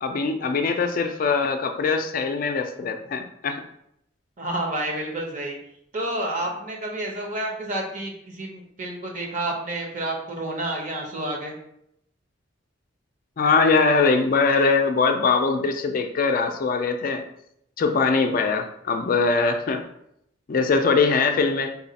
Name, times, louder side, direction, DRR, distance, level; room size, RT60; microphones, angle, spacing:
voice 1, 0.0-3.6 13.4-17.2 17.8-19.8 20.5-21.7, left 4 dB, 45° left, 5 dB, 0.4 m, -22 dB
voice 2, 4.4-5.6 5.9-11.5, right 1 dB, 40° right, 0 dB, 0.9 m, -29 dB
4.0 x 2.4 x 4.0 m, 0.75 s
head